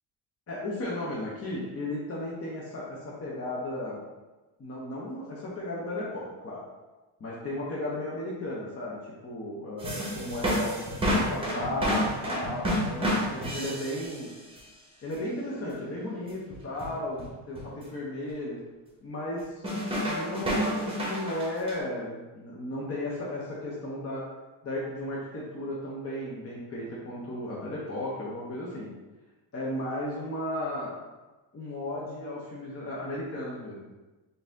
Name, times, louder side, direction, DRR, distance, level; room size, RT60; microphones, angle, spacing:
voice 1, 0.5-4.0 4.6-6.6 7.2-10.7 11.2-14.3 15.0-18.6 19.0-19.6 20.0-24.2 24.6-28.9 29.5-30.9 31.5-33.8, left 1 dB, 30° left, -5 dB, 0.8 m, -35 dB
sound 1, 9.8-14.3 14.6-14.7 15.1-15.2 16.5-16.9 17.2-17.3 17.6-17.7 19.6-21.7, equal, 10° right, 0.9 m, -29 dB
3.9 x 2.7 x 3.6 m, 1.2 s
cardioid pair, 120°, 49 cm